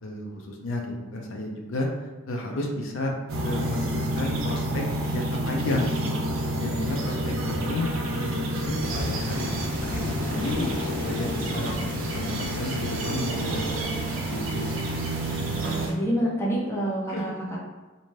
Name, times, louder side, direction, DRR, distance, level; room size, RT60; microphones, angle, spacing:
voice 1, 0.0-0.8 1.1-1.9 2.3-3.1 3.4-4.8 5.1-6.2 6.6-8.3 8.5-9.5 9.8-11.7 12.1-14.9 17.1-17.3, left 1 dB, 75° left, 0 dB, 0.5 m, -32 dB
sound 1, 3.3-15.9, right 1 dB, 85° right, 0.5 m, -29 dB
sound 2, 8.8-15.9, right 1 dB, 45° right, 0.7 m, -37 dB
voice 2, 15.8-17.6, equal, 15° left, -6 dB, 0.6 m, -27 dB
2.6 x 2.1 x 3.1 m, 1.3 s
head